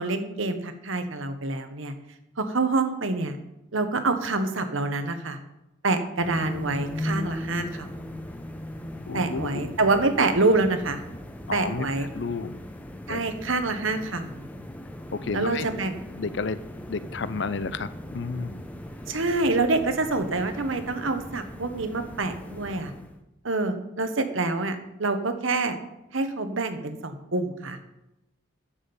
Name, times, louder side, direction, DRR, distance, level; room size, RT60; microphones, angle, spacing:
voice 1, 0.0-1.9 2.4-3.4 3.7-5.4 5.8-7.9 9.1-11.0 11.5-12.1 13.1-14.5 15.3-15.9 19.1-22.9 23.4-25.8 26.1-27.8, right 3 dB, 75° right, 8 dB, 1.3 m, -26 dB
sound 1, 6.2-23.2, equal, 5° left, 0.8 m, -38 dB
voice 2, 9.1-9.8 11.5-11.9 12.1-12.6 13.1-13.2 15.1-15.7 16.1-16.6 16.9-18.6, left 4 dB, 55° left, 15 dB, 0.5 m, -31 dB
10.0 x 7.4 x 7.0 m, 0.89 s
head